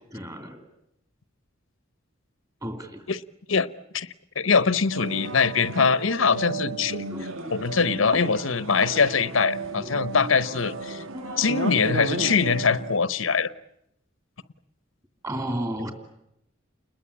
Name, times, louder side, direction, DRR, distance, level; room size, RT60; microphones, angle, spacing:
voice 1, 0.1-0.7 2.6-3.1 7.1-7.5 9.8-9.9 11.1-11.5 15.2-15.9, right 1 dB, 20° right, 6 dB, 2.9 m, -33 dB
voice 2, 4.4-7.0 7.5-11.0 11.4-13.5, left 5 dB, 85° left, 15 dB, 0.9 m, -23 dB
sound 1, 4.9-13.0, right 3 dB, 85° right, 1.5 m, -33 dB
29.5 x 21.0 x 8.6 m, 0.81 s
head